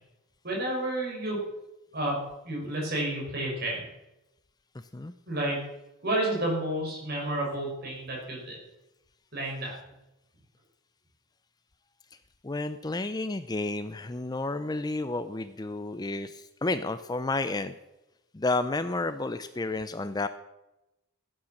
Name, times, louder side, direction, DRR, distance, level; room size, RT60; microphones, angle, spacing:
voice 1, 0.4-1.4 1.9-2.2 2.4-3.9 5.3-5.6 6.0-8.6 9.3-9.8, right 1 dB, 45° right, -1 dB, 5.5 m, -30 dB
voice 2, 12.4-17.7 18.3-20.3, left 2 dB, 20° left, 11 dB, 0.4 m, -31 dB
15.5 x 8.7 x 6.4 m, 0.96 s
head